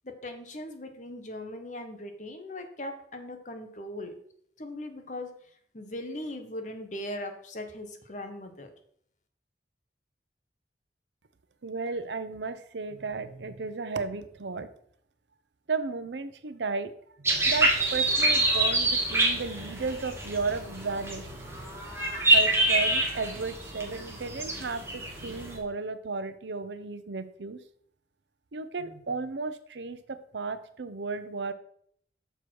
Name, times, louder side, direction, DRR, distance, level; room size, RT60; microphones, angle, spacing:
voice 1, 0.0-4.1 4.6-5.3 5.7-8.7, left 1 dB, 45° left, 6 dB, 1.1 m, -39 dB
voice 2, 11.6-14.7 15.7-16.9 17.2-21.8 22.3-27.6 28.5-31.5, right 4 dB, 85° right, 11 dB, 0.7 m, -34 dB
sound 1, 17.2-25.6, right 2 dB, 15° right, 1.6 m, -26 dB
6.7 x 6.0 x 4.6 m, 0.64 s
head